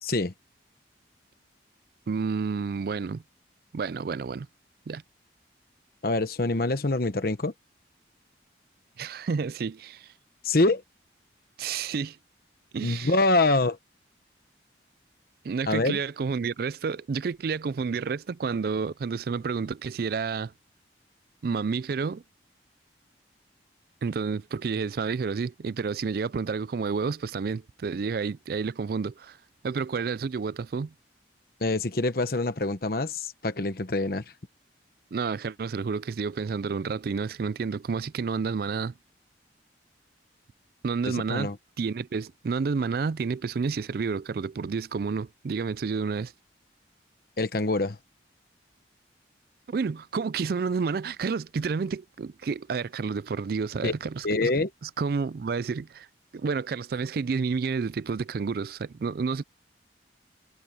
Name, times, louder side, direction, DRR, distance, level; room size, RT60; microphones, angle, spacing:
voice 1, 0.0-0.3 6.0-7.5 10.4-10.8 12.8-13.8 15.7-16.0 31.6-34.2 41.1-41.6 47.4-48.0 53.8-53.9 54.2-54.7, left 2 dB, 50° left, 1.0 m, -25 dB
voice 2, 2.1-3.2 3.7-4.5 4.9-5.0 9.0-10.1 11.6-12.2 12.7-13.1 15.4-20.5 21.4-22.2 24.0-29.4 29.6-30.9 35.1-38.9 40.8-41.5 41.8-46.3 49.7-54.5 54.8-56.1 56.3-59.4, right 5 dB, 50° right, 0.3 m, -30 dB
head